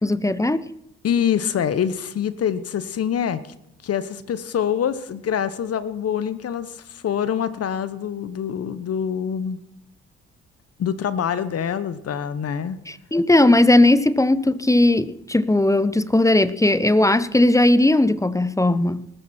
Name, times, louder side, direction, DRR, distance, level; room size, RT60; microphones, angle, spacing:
voice 1, 0.0-0.7 12.9-19.1, left 1 dB, 10° left, 0.8 m, -18 dB
voice 2, 1.0-3.4 3.8-9.6 10.8-12.8, left 8 dB, 55° left, 1.1 m, -25 dB
18.5 x 13.5 x 4.4 m
hypercardioid pair, 50°, 30 cm